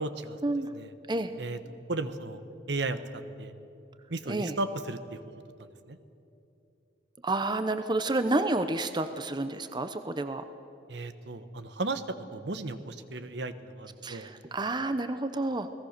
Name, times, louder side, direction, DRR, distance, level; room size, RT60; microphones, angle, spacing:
voice 1, 0.0-0.4 0.7-0.9 1.4-1.6 1.9-2.4 2.7-3.5 4.1-5.2 5.6-6.0 10.9-12.0 12.3-14.3, right 2 dB, 70° right, 10 dB, 1.2 m, -35 dB
voice 2, 4.3-4.6 7.2-10.4 14.0-15.7, right 2 dB, 25° right, 10 dB, 0.8 m, -30 dB
29.5 x 18.5 x 6.7 m, 2.8 s
head